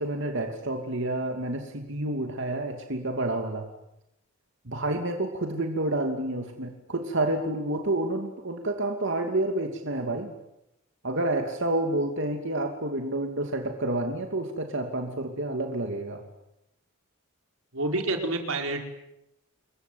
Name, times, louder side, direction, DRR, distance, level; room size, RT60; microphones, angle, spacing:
voice 1, 0.0-3.7 4.7-10.3 11.0-16.2, right 1 dB, 60° right, 4 dB, 2.8 m, -29 dB
voice 2, 17.7-18.8, right 2 dB, 85° right, 4 dB, 4.9 m, -28 dB
28.5 x 22.5 x 9.4 m, 0.86 s
head